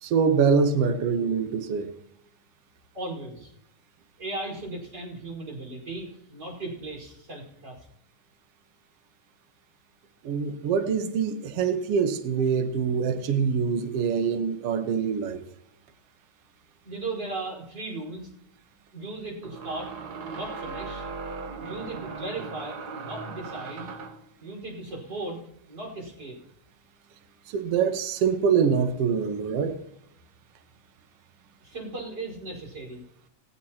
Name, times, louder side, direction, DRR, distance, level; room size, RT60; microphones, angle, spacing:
voice 1, 0.0-1.9 10.2-15.4 27.5-29.8, right 6 dB, 60° right, 2.1 m, -24 dB
voice 2, 2.9-3.5 4.2-7.8 16.8-18.3 18.9-19.9 20.3-21.1 21.6-24.0 24.4-25.4 25.7-26.4 31.6-33.0, right 2 dB, 35° right, 5.5 m, -37 dB
sound 1, 17.5-17.6 19.4-24.3, right 4 dB, 85° right, 0.8 m, -38 dB
20.0 x 15.5 x 2.9 m
omnidirectional pair, 3.4 m